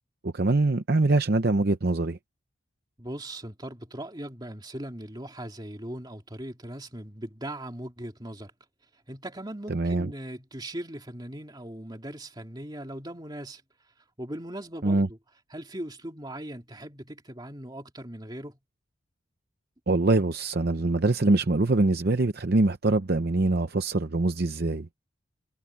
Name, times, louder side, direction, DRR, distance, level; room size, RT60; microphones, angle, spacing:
voice 1, 0.2-2.2 9.7-10.1 14.8-15.1 19.9-24.9, right 2 dB, 50° right, 0.7 m, -24 dB
voice 2, 3.0-8.5 9.1-13.6 14.2-15.2 15.5-18.6, right 1 dB, 20° right, 2.8 m, -39 dB
head